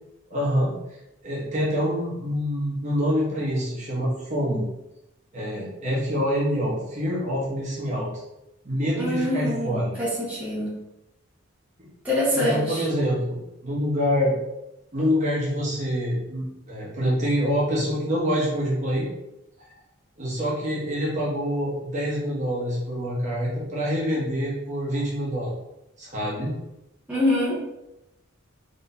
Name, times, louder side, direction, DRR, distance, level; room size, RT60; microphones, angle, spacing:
voice 1, 0.3-0.7 1.2-4.7 5.3-8.2 8.6-10.0 11.8-11.9 12.3-14.3 14.9-19.1 20.2-25.5 26.0-26.5, equal, 35° right, -5 dB, 1.1 m, -26 dB
voice 2, 9.0-10.7 12.0-12.8 27.1-27.6, left 1 dB, 5° right, -9 dB, 0.9 m, -25 dB
3.9 x 3.2 x 2.7 m, 0.89 s
head